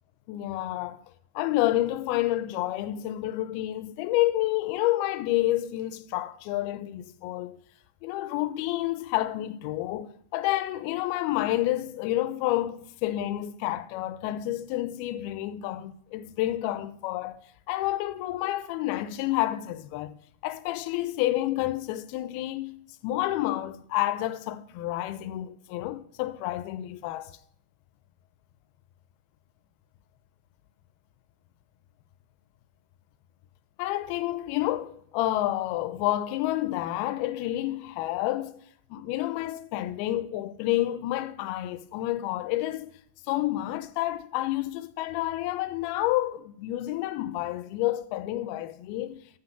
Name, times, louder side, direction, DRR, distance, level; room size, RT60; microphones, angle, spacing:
voice 1, 0.3-1.0 1.4-7.6 8.0-17.4 17.7-20.2 20.4-27.3 33.8-38.6 38.9-42.9 43.3-49.2, left 15 dB, 85° left, 2.5 m, -29 dB
7.7 x 5.7 x 6.8 m
omnidirectional pair, 4.4 m